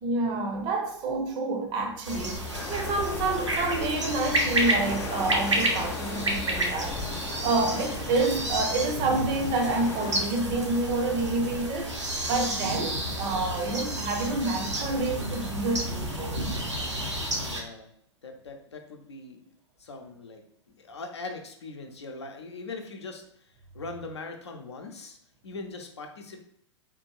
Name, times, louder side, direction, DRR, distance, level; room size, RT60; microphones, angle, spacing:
voice 1, 0.0-7.0 7.4-12.0 12.3-16.4, right 3 dB, 30° right, 0.6 m, -28 dB
sound 1, 2.0-17.6, right 1 dB, 80° right, 0.8 m, -31 dB
sound 2, 2.5-10.3, left 5 dB, 20° left, 0.3 m, -38 dB
voice 2, 17.3-17.9 18.2-19.4 19.8-20.4 20.8-25.2 25.4-26.4, left 3 dB, 70° left, 0.6 m, -41 dB
3.5 x 2.4 x 3.0 m
figure-of-eight pair, 100°, 15 cm